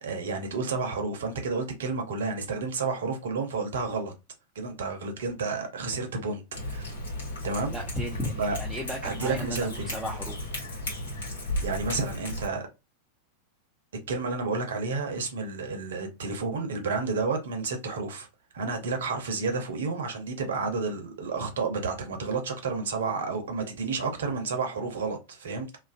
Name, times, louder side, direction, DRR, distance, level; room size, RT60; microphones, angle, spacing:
voice 1, 0.0-4.1 4.5-6.9 7.4-7.7 8.4-8.6 9.0-9.9 11.6-12.7 14.1-18.3 18.5-25.7, right 4 dB, 60° right, 0.6 m, -31 dB
Cat, 6.5-12.5, left 1 dB, 65° left, 1.1 m, -35 dB
voice 2, 7.7-10.5, equal, ahead, 0.6 m, -35 dB
2.4 x 2.2 x 2.4 m
figure-of-eight pair, 90°, 0 cm